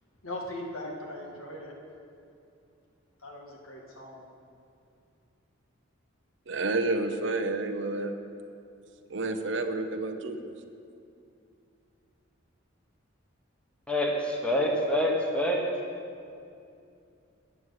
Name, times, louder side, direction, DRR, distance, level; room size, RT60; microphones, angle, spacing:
voice 1, 0.2-1.8 3.2-4.2, left 1 dB, 85° left, -1 dB, 1.9 m, -39 dB
voice 2, 6.5-8.1 9.1-10.4, right 2 dB, 60° right, 7 dB, 0.7 m, -30 dB
voice 3, 13.9-15.6, left 1 dB, 5° left, 0 dB, 1.1 m, -26 dB
9.5 x 8.9 x 6.4 m, 2.5 s
head